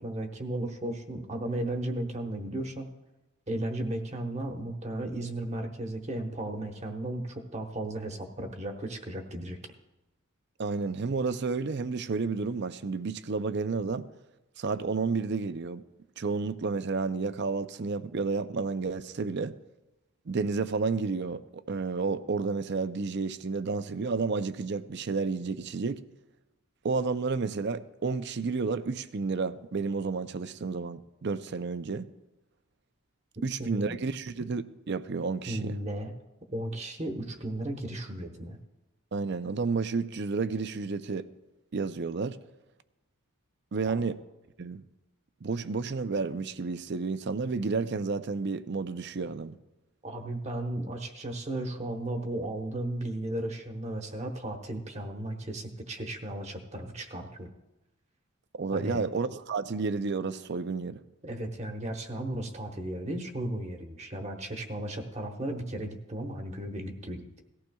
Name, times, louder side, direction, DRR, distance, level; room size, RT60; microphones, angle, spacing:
voice 1, 0.0-2.9 3.5-9.6 33.6-34.0 35.5-36.1 36.5-38.6 43.9-44.0 50.0-57.5 58.7-59.0 61.2-67.4, right 1 dB, 30° right, 1.1 m, -35 dB
voice 2, 10.6-14.1 14.6-15.8 16.2-19.6 20.3-26.0 26.8-32.1 33.4-35.7 39.1-41.3 41.7-42.4 43.7-44.2 44.6-44.8 45.4-49.6 58.6-61.0, right 4 dB, 50° right, 0.5 m, -31 dB
18.0 x 14.5 x 2.3 m
head